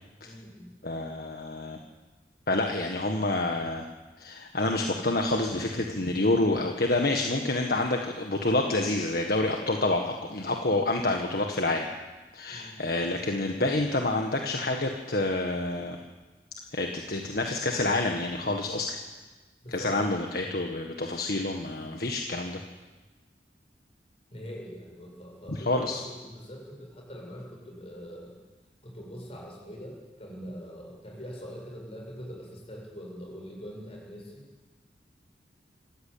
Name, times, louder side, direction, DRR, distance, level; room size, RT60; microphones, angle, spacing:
voice 1, 0.2-0.7 12.5-12.8 19.6-20.3 24.3-28.3 28.8-34.5, equal, 35° left, -1 dB, 7.5 m, -43 dB
voice 2, 0.8-1.8 2.5-3.8 4.2-11.9 12.3-16.0 16.7-19.0 19.7-22.6 25.5-26.0, left 2 dB, 55° left, 2 dB, 1.7 m, -28 dB
26.5 x 14.5 x 8.7 m, 1.2 s
head